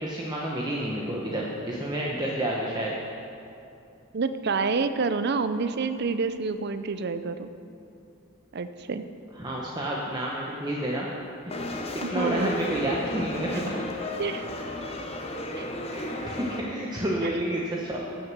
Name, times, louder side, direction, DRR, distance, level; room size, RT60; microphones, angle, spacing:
voice 1, 0.0-2.9 9.4-11.1 11.6-11.8 12.1-13.8 15.9-18.0, right 1 dB, 20° right, -4 dB, 0.9 m, -30 dB
voice 2, 4.1-7.5 8.5-9.0 12.0-12.6 14.2-14.5 15.5-15.7 17.2-17.3, right 4 dB, 50° right, 10 dB, 0.5 m, -28 dB
sound 1, 11.5-16.6, left 1 dB, 30° left, 0.8 m, -33 dB
15.0 x 6.5 x 6.1 m, 2.7 s
head